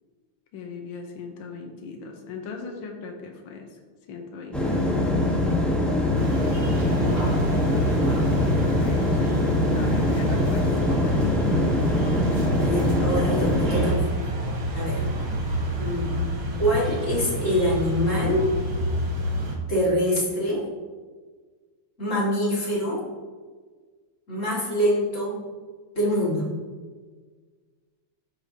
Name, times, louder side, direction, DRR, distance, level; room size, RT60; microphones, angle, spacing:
voice 1, 0.5-3.7 4.1-5.1 8.3-9.3 9.7-10.7 11.0-11.5 15.0-15.3, left 4 dB, 70° left, 2 dB, 1.7 m, -39 dB
sound 1, 4.5-13.9, left 1 dB, ahead, 0.5 m, -23 dB
sound 2, 6.1-19.6, right 1 dB, 55° right, 1.9 m, -28 dB
voice 2, 7.0-7.4 8.0-8.3 10.5-10.9 12.6-14.1 14.7-15.1 15.8-16.2 16.6-18.5 19.7-20.7 22.0-23.0 24.3-25.5 25.9-26.5, equal, 35° left, -5 dB, 2.3 m, -25 dB
14.0 x 5.0 x 2.8 m, 1.5 s
omnidirectional pair, 2.4 m